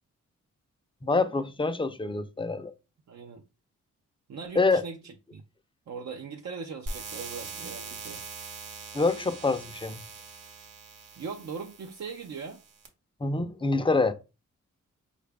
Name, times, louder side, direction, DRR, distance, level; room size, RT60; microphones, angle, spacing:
voice 1, 1.0-2.7 4.6-4.8 8.9-10.0 13.2-14.1, left 3 dB, 15° left, 0.5 m, -26 dB
voice 2, 3.1-3.4 4.3-5.4 5.9-8.2 11.2-12.6, right 5 dB, 60° right, 0.6 m, -40 dB
sound 1, 6.9-12.9, right 4 dB, 85° right, 1.0 m, -42 dB
4.7 x 2.5 x 3.3 m
cardioid pair, 65°, 31 cm